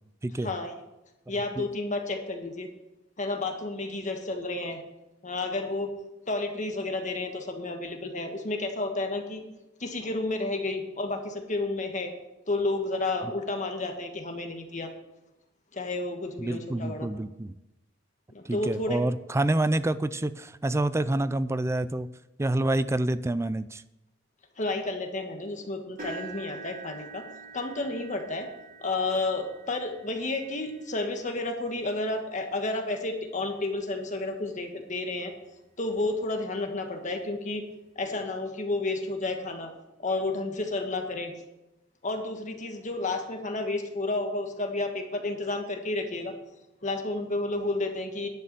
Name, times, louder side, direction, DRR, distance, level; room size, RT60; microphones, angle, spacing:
voice 1, 0.3-0.7 1.3-2.7 3.2-4.8 5.2-5.9 6.3-9.4 9.8-12.1 12.5-14.9 15.7-17.1 18.3-19.0 24.6-27.3 27.5-28.5 28.8-35.3 35.8-37.6 37.9-39.7 40.0-41.3 42.0-46.3 46.8-48.3, left 2 dB, 40° left, 4 dB, 1.5 m, -31 dB
voice 2, 16.4-17.6 18.5-22.1 22.4-23.8, right 1 dB, 15° right, 14 dB, 0.4 m, -27 dB
sound 1, 26.0-34.0 34.6-34.9 35.3-35.4 36.8-36.9, right 4 dB, 50° right, 3.4 m, -47 dB
10.5 x 6.8 x 6.8 m, 0.94 s
head